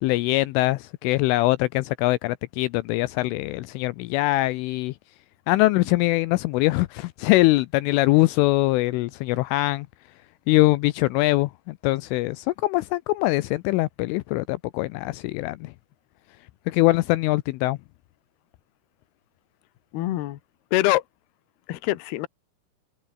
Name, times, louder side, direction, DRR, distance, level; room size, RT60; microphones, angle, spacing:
voice 1, 0.0-4.9 5.5-9.9 10.5-15.7 16.7-17.8, left 20 dB, 85° left, 3.0 m, -22 dB
voice 2, 19.9-20.4 20.7-21.0 21.7-22.3, left 16 dB, 70° left, 2.7 m, -24 dB
omnidirectional pair, 6.0 m